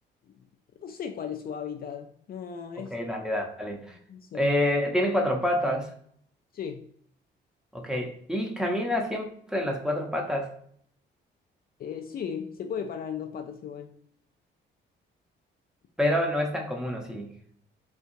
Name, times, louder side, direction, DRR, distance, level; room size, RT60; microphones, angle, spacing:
voice 1, 0.8-3.0 3.9-4.5 6.5-6.9 11.8-14.0, left 7 dB, 50° left, 5 dB, 0.4 m, -36 dB
voice 2, 2.7-3.9 4.3-5.9 7.7-10.5 16.0-17.3, left 1 dB, 5° right, 1 dB, 0.8 m, -27 dB
4.4 x 2.4 x 2.6 m, 0.62 s
cardioid pair, 90°, 20 cm